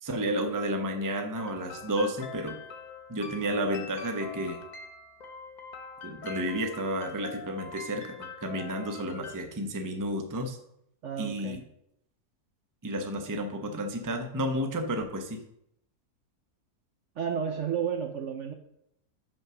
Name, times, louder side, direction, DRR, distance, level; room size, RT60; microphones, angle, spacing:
voice 1, 0.0-2.6 3.1-4.6 6.0-10.6 11.2-11.6 12.8-15.4, right 1 dB, 20° right, 5 dB, 0.5 m, -31 dB
sound 1, 1.3-9.4, left 5 dB, 40° left, 0.7 m, -44 dB
voice 2, 11.0-11.6 17.2-18.5, right 7 dB, 65° right, 6 dB, 0.8 m, -32 dB
5.6 x 5.6 x 6.0 m, 0.76 s
omnidirectional pair, 1.7 m